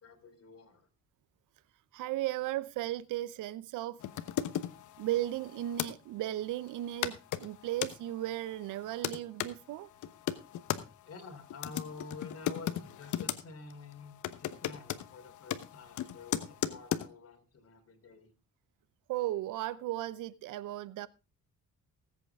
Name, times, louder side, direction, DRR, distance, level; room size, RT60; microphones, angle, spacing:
voice 1, 0.0-0.9 11.0-18.3, left 4 dB, 50° left, 3.3 m, -49 dB
voice 2, 1.9-4.0 5.0-9.9 19.1-21.1, right 14 dB, 90° right, 0.7 m, -35 dB
sound 1, 4.0-5.9 6.7-6.8 7.0-7.9 8.6-9.5 10.0-10.8 11.5-13.4 13.7-13.9 14.2-17.1, left 11 dB, 75° left, 1.1 m, -36 dB
19.0 x 8.2 x 3.5 m
cardioid pair, 90°, 30 cm